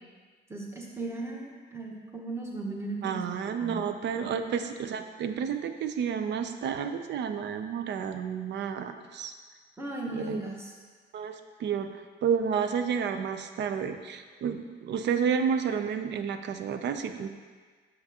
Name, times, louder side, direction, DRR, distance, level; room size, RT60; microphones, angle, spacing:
voice 1, 0.5-3.2 3.5-3.8 9.8-10.7, right 2 dB, 15° right, -1 dB, 1.1 m, -37 dB
voice 2, 3.0-9.3 10.1-10.4 11.1-11.9 12.2-17.3, right 7 dB, 65° right, 8 dB, 0.5 m, -30 dB
6.5 x 5.8 x 2.8 m, 1.5 s
cardioid pair, 90°, 20 cm